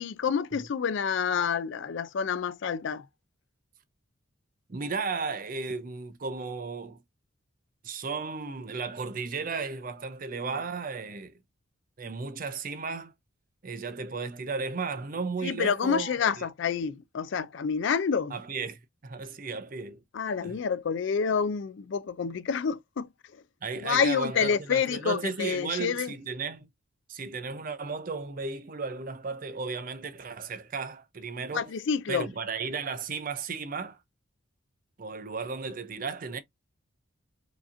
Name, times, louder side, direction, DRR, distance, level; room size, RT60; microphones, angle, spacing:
voice 1, 0.0-3.1 15.4-18.3 20.1-23.1 23.8-26.1 31.5-32.3, left 6 dB, 60° left, 0.4 m, -28 dB
voice 2, 4.7-7.0 7.8-11.3 12.0-13.1 13.6-16.5 18.3-20.0 20.4-20.6 23.6-26.7 27.1-31.7 32.1-34.0 35.0-36.4, right 4 dB, 40° right, 0.5 m, -34 dB
4.7 x 2.8 x 2.5 m
head